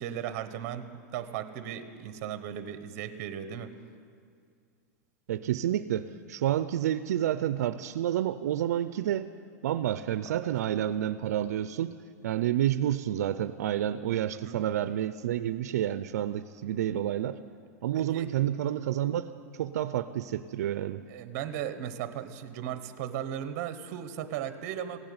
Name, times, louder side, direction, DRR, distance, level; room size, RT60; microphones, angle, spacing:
voice 1, 0.0-3.7 14.4-14.6 18.0-18.3 21.1-25.0, right 10 dB, 40° right, 11 dB, 1.0 m, -36 dB
voice 2, 5.3-9.3 9.6-12.0 12.2-17.4 17.8-19.3 19.6-21.0, right 11 dB, 75° right, 12 dB, 0.5 m, -29 dB
16.0 x 8.8 x 9.5 m, 2.3 s
supercardioid pair, 155°, 9 cm